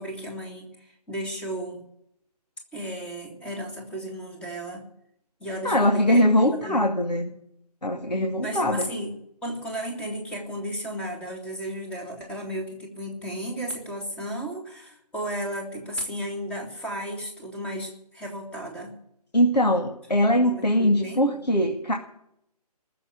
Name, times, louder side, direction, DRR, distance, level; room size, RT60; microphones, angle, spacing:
voice 1, 0.0-1.9 2.7-4.9 5.4-6.2 6.5-6.9 8.4-9.1 9.4-19.0 20.3-21.4, right 1 dB, 5° left, 1 dB, 2.6 m, -34 dB
voice 2, 5.6-7.3 7.8-8.9 19.3-21.9, equal, 90° left, 2 dB, 2.3 m, -22 dB
19.5 x 7.7 x 9.7 m, 0.75 s
figure-of-eight pair, 150°, 21 cm